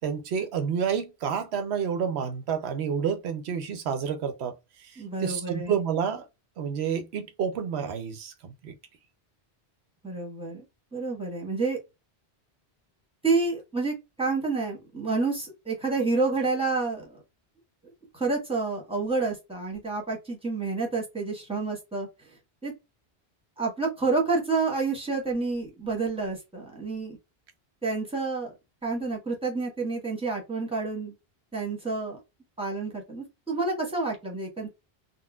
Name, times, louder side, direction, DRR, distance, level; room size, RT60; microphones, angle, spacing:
voice 1, 0.0-6.3 6.6-8.7, right 7 dB, 85° right, 0.9 m, -29 dB
voice 2, 5.0-5.8 10.0-10.6 10.9-11.8 13.2-17.1 17.8-22.1 22.6-22.7 23.6-27.2 27.8-28.5 28.8-31.1 31.5-32.2 32.6-34.7, right 3 dB, 5° right, 1.2 m, -29 dB
3.8 x 2.1 x 2.2 m
omnidirectional pair, 1.1 m